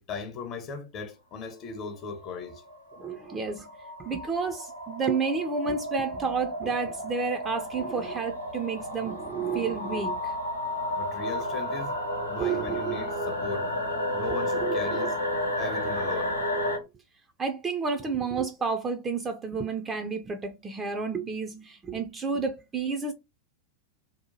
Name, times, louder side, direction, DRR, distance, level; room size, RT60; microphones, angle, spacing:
voice 1, 0.0-2.6 11.0-11.9 12.3-13.7 14.1-15.2 15.6-16.4, left 4 dB, 35° left, 0.5 m, -37 dB
sound 1, 1.8-16.8, left 1 dB, 90° left, 0.8 m, -32 dB
voice 2, 3.0-3.7 4.0-10.3 12.4-13.0 14.6-15.1 17.4-23.1, right 5 dB, 20° right, 0.4 m, -30 dB
2.7 x 2.2 x 2.8 m
figure-of-eight pair, 90°, 0 cm